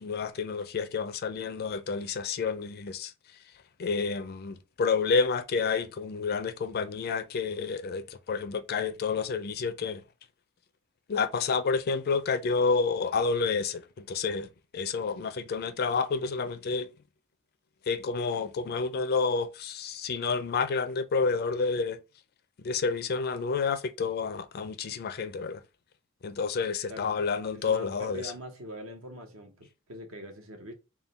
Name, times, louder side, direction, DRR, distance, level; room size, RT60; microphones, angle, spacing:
voice 1, 0.0-3.1 3.8-10.0 11.1-16.9 17.9-22.0 22.6-25.6 26.2-28.3, left 5 dB, 50° left, 0.4 m, -29 dB
voice 2, 26.9-27.2 27.6-30.7, equal, 70° right, 1.0 m, -43 dB
3.6 x 2.2 x 4.1 m
head